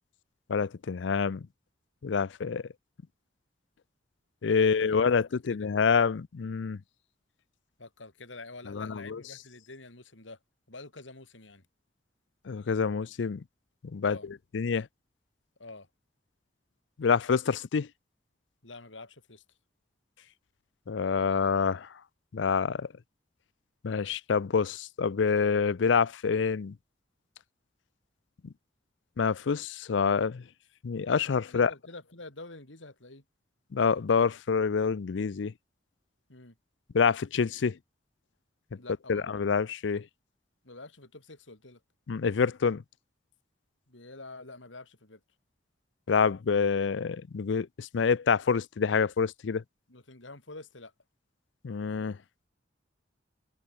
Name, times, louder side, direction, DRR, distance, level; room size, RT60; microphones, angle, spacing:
voice 1, 0.5-1.5 2.0-2.6 4.4-6.8 8.7-9.2 12.5-13.4 13.9-14.2 14.5-14.9 17.0-17.9 20.9-21.9 22.3-22.9 23.8-26.7 29.2-30.4 30.8-31.7 33.7-35.5 36.9-37.8 39.1-40.0 42.1-42.8 46.1-49.6 51.6-52.2, left 5 dB, 70° left, 0.5 m, -27 dB
voice 2, 4.5-5.0 5.3-5.7 7.8-10.4 10.7-11.6 14.0-14.3 15.6-15.9 18.6-19.4 31.4-33.2 36.3-36.5 38.8-39.3 40.6-41.8 43.9-45.2 49.9-50.9, left 2 dB, 85° left, 3.9 m, -47 dB
head